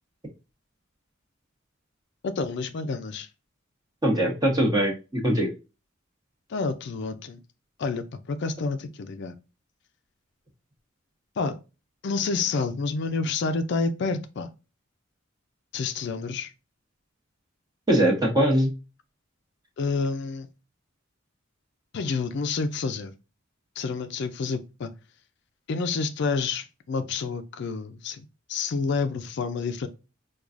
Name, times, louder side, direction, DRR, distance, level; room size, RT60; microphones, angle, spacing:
voice 1, 2.2-3.3 6.5-7.4 7.8-9.3 11.4-11.6 12.0-14.5 15.7-16.5 19.8-20.5 21.9-23.1 23.8-24.9 25.7-29.9, left 4 dB, 55° left, 0.4 m, -29 dB
voice 2, 4.0-5.5 17.9-18.7, right 1 dB, 20° right, 1.0 m, -22 dB
4.6 x 2.3 x 2.4 m
head